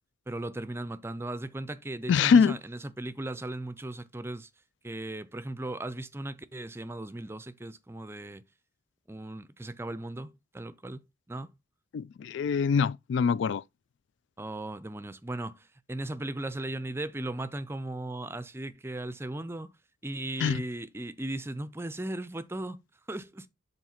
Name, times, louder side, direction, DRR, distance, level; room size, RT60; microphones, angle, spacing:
voice 1, 0.3-4.5 4.8-8.4 9.1-11.0 11.3-11.5 14.4-19.7 20.0-22.8 23.1-23.5, right 1 dB, 10° right, 0.4 m, -37 dB
voice 2, 2.1-2.6 11.9-13.6 20.4-20.6, left 6 dB, 70° left, 0.3 m, -24 dB
7.4 x 3.1 x 5.7 m
head